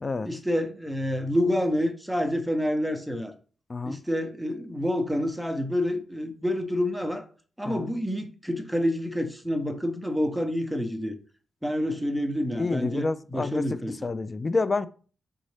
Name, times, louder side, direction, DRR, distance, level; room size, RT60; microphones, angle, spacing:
voice 1, 0.2-3.3 3.8-7.3 7.6-11.2 11.6-14.0, equal, ahead, 0.7 m, -28 dB
voice 2, 12.5-13.6 14.0-14.9, left 3 dB, 30° left, 0.3 m, -28 dB
4.0 x 3.6 x 3.3 m
cardioid pair, 100°, 0 cm